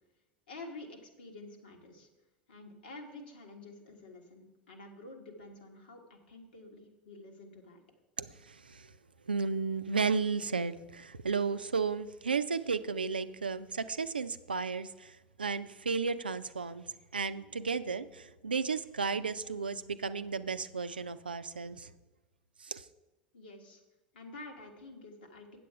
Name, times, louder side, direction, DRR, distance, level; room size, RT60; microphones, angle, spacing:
voice 1, 0.5-2.1 2.5-7.8 23.3-23.8 24.1-25.6, left 2 dB, 75° left, 2 dB, 1.6 m, -49 dB
voice 2, 8.2-8.9 9.3-16.9 17.1-21.9 22.6-22.9, right 5 dB, 90° right, 12 dB, 0.4 m, -34 dB
8.7 x 7.5 x 4.7 m, 1.1 s
figure-of-eight pair, 75°, 5 cm